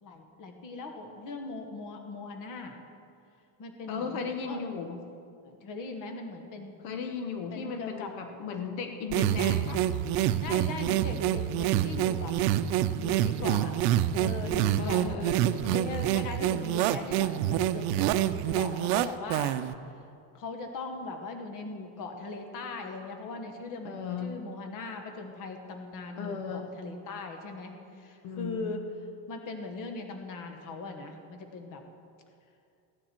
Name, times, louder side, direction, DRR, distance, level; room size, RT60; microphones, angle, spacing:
voice 1, 0.0-2.8 3.6-4.6 5.4-6.8 7.5-8.4 10.4-12.3 12.7-13.7 14.1-15.0 15.6-19.6 20.3-28.8 29.3-31.8, left 3 dB, 40° left, 4 dB, 1.4 m, -40 dB
voice 2, 3.9-5.0 6.8-9.8 14.7-15.6 23.8-24.4 26.2-26.7 28.2-28.7, left 6 dB, 75° left, 5 dB, 1.2 m, -36 dB
sound 1, 9.1-19.7, right 12 dB, 85° right, 0.7 m, -27 dB
16.0 x 10.0 x 4.4 m, 2.4 s
cardioid pair, 150°, 48 cm